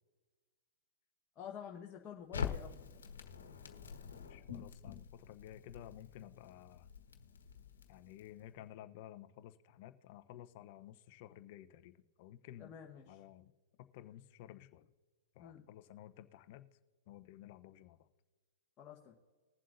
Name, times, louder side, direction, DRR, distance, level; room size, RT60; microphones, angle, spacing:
voice 1, 1.3-3.1 12.6-13.2 15.4-15.6 18.8-19.1, left 8 dB, 30° left, -2 dB, 1.4 m, -49 dB
Crackle, 2.3-8.5, left 6 dB, 85° left, 1.4 m, -45 dB
voice 2, 4.3-6.9 7.9-12.7 13.1-13.5 13.9-14.9 15.4-16.7 17.1-18.0, left 12 dB, 50° left, 12 dB, 0.8 m, -54 dB
21.0 x 7.6 x 2.7 m, 1.4 s
hypercardioid pair, 125°, 0 cm